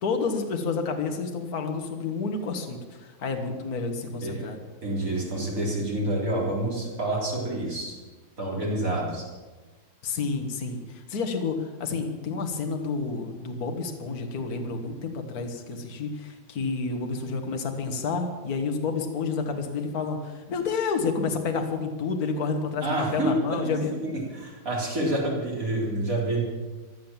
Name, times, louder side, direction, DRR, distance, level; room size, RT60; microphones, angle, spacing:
voice 1, 0.0-4.6 10.0-23.9, left 4 dB, 55° left, 4 dB, 1.9 m, -30 dB
voice 2, 4.8-7.9 8.4-9.3 22.8-23.3 24.0-26.5, right 1 dB, 45° right, -3 dB, 4.4 m, -28 dB
16.0 x 11.0 x 7.4 m, 1.3 s
omnidirectional pair, 2.0 m